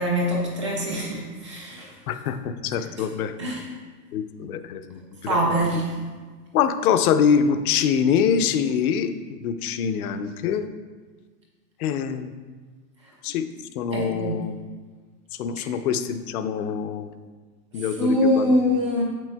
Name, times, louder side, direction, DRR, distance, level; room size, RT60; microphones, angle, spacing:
voice 1, 0.0-2.0 2.7-3.1 3.4-3.7 5.2-5.9 13.0-13.1 13.9-14.4 15.6-15.7 17.8-19.0, equal, 20° right, -2 dB, 0.3 m, -24 dB
voice 2, 2.1-3.3 4.1-5.4 6.5-10.7 11.8-12.3 13.2-13.5 13.8-14.5 15.4-17.1 17.7-18.0 18.4-18.5, left 7 dB, 60° left, 9 dB, 0.6 m, -24 dB
8.1 x 6.1 x 2.2 m, 1.4 s
supercardioid pair, 165°, 49 cm